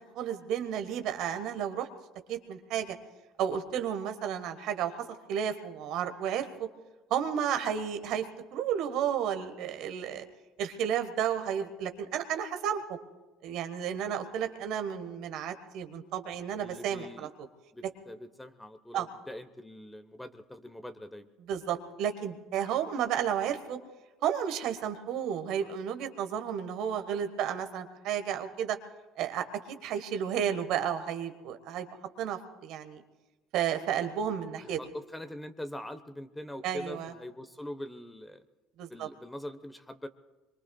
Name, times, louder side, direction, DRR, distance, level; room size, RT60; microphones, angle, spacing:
voice 1, 0.0-1.9 2.3-3.0 3.4-4.9 5.3-6.7 7.1-10.2 10.6-13.0 13.4-17.3 18.9-19.1 21.5-23.8 24.2-28.8 29.2-31.9 32.2-33.0 33.5-34.8 36.6-37.1 38.8-39.1, right 9 dB, 65° right, 7 dB, 1.4 m, -32 dB
voice 2, 16.6-17.3 17.7-21.3 34.6-38.4 38.9-40.1, left 1 dB, 10° left, 11 dB, 1.1 m, -43 dB
25.5 x 23.0 x 2.4 m, 1.1 s
hypercardioid pair, 65°, 0 cm